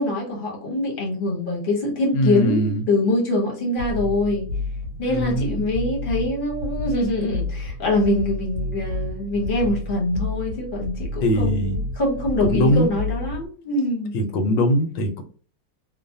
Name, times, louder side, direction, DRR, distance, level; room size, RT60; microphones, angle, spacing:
voice 1, 0.0-4.5 5.0-14.1, left 2 dB, 40° left, 0.7 m, -24 dB
voice 2, 2.1-2.8 5.1-5.6 11.2-11.8 12.4-12.9 14.1-15.2, equal, 85° left, 1.3 m, -21 dB
sound 1, 3.8-13.5, left 1 dB, 65° right, 1.1 m, -30 dB
3.1 x 2.1 x 2.5 m
omnidirectional pair, 1.9 m